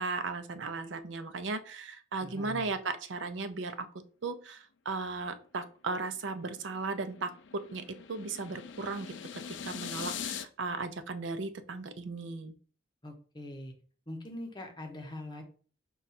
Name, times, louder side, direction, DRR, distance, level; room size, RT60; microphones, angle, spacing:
voice 1, 0.0-3.9 4.2-7.3 7.7-9.1 9.7-12.5, right 3 dB, 70° right, 10 dB, 0.5 m, -36 dB
voice 2, 2.2-2.7 13.0-13.7 14.1-15.4, left 1 dB, 25° left, 2 dB, 0.9 m, -42 dB
sound 1, 6.2-10.5, left 8 dB, 70° left, 0.4 m, -42 dB
5.2 x 2.4 x 4.1 m, 0.41 s
head